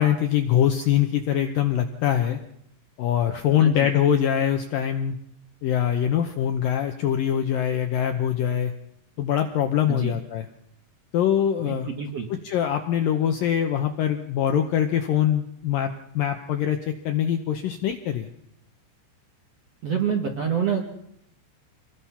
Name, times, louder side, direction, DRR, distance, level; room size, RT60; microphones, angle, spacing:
voice 1, 0.0-2.4 3.0-5.2 5.6-8.7 9.2-10.5 11.1-11.9 12.4-18.3, left 10 dB, 75° left, 6 dB, 2.1 m, -23 dB
voice 2, 9.9-10.2 11.6-12.3 19.8-20.8, right 7 dB, 55° right, 2 dB, 1.8 m, -27 dB
26.5 x 20.0 x 5.8 m, 0.75 s
omnidirectional pair, 5.2 m